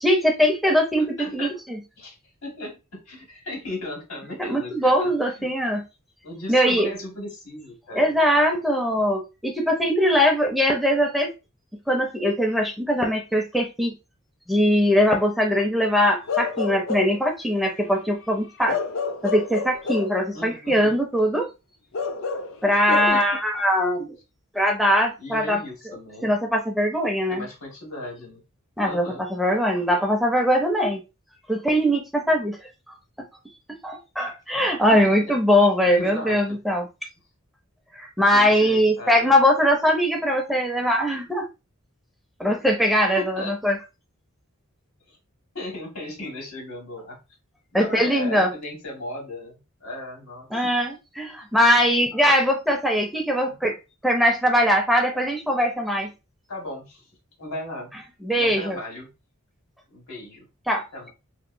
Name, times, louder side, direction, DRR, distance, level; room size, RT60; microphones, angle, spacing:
voice 1, 0.0-1.8 4.4-5.8 6.5-6.9 7.9-11.3 11.9-13.9 14.5-18.8 19.2-21.5 22.6-24.2 24.5-25.6 26.2-27.4 28.8-29.1 29.3-31.0 31.5-32.6 33.8-36.9 37.9-41.5 42.4-43.8 47.7-48.5 50.5-53.7 54.0-56.1 58.2-58.8 60.7-60.8, equal, ahead, 2 dB, 0.5 m, -21 dB
voice 2, 1.2-1.6 2.0-5.5 6.2-8.1 20.3-21.0 22.9-23.2 25.2-26.3 27.3-28.4 28.8-29.2 34.9-35.3 35.9-36.6 38.3-39.3 43.1-43.6 45.1-45.2 45.5-47.2 47.7-49.6 49.8-50.5 53.5-53.7 56.5-57.1 57.4-58.0 58.3-59.1 59.9-60.5 60.9-61.1, left 1 dB, 80° left, 0 dB, 1.6 m, -36 dB
Bark / Livestock farm animals working animals, 16.3-17.3 18.7-20.2 21.9-23.1, left 5 dB, 65° left, 0.4 m, -28 dB
2.9 x 2.5 x 2.5 m, 0.27 s
head